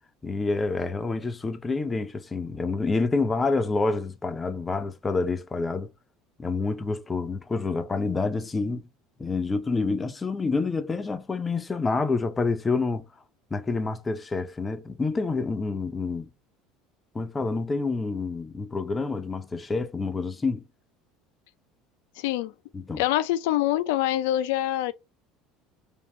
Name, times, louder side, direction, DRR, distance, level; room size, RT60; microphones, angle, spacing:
voice 1, 0.2-5.9 6.4-8.9 9.2-13.0 13.5-16.3 17.1-20.6 22.7-23.0, left 3 dB, 15° left, 0.5 m, -28 dB
voice 2, 22.2-22.5 23.0-24.9, left 14 dB, 90° left, 0.4 m, -25 dB
3.5 x 2.6 x 4.2 m
cardioid pair, 160°, 0 cm